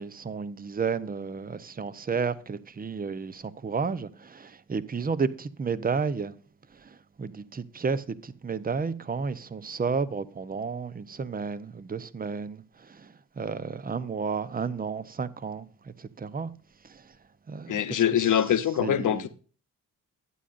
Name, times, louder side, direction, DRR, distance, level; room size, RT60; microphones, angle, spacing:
voice 1, 0.0-6.3 6.8-12.6 12.9-13.1 13.4-16.5 17.5-18.2 18.8-19.3, right 5 dB, 25° right, 0.7 m, -32 dB
voice 2, 17.7-19.3, left 9 dB, 65° left, 0.9 m, -24 dB
12.5 x 9.4 x 2.5 m
cardioid pair, 80°, 34 cm